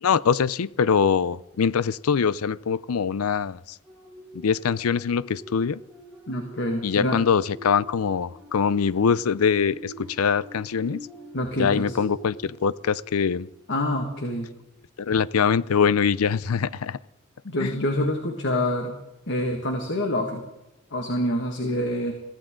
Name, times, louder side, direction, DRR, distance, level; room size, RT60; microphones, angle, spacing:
voice 1, 0.0-3.8 4.3-5.8 6.8-11.1 11.6-13.5 15.0-17.0 17.6-17.7, left 6 dB, 90° left, 0.5 m, -23 dB
sound 1, 3.8-13.7 14.2-14.4, right 1 dB, 5° right, 7.1 m, -45 dB
voice 2, 6.3-7.2 11.3-12.0 13.7-14.5 17.4-19.0 19.3-20.4 20.9-22.1, left 1 dB, 60° left, 1.8 m, -26 dB
22.5 x 15.5 x 3.8 m
head